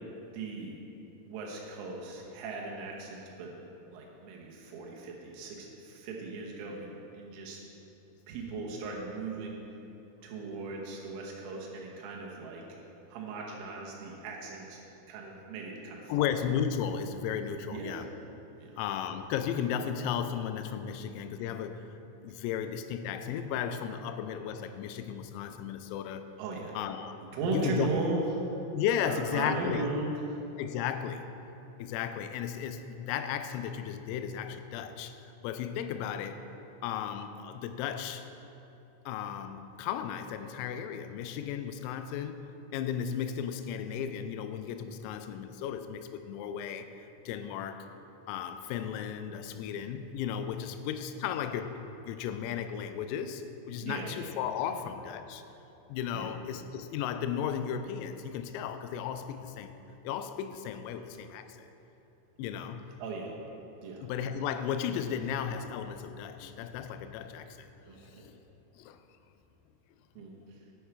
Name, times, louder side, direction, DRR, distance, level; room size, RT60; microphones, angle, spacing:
voice 1, 0.3-0.8 1.2-3.5 3.9-7.6 8.3-9.6 10.2-12.6 13.1-14.8 15.1-16.3 17.7-18.0 18.6-18.8 26.4-26.7 27.3-28.4 29.0-30.1 53.8-54.1 54.7-54.9 56.1-56.4 60.9-61.0 63.0-63.4 63.8-64.1 67.9-68.1 70.2-70.4, right 3 dB, 75° right, -2 dB, 3.6 m, -37 dB
voice 2, 16.1-18.1 18.8-21.9 22.2-26.3 26.8-27.2 27.5-27.9 28.7-29.9 30.6-31.3 31.8-35.1 35.4-36.4 36.8-38.3 39.1-42.4 42.7-47.9 48.3-51.8 52.1-55.4 55.9-59.7 60.0-61.6 62.4-62.9 64.0-68.3 68.7-69.0, left 8 dB, 85° left, 9 dB, 3.3 m, -35 dB
10.0 x 8.1 x 4.7 m, 2.9 s
omnidirectional pair, 6.0 m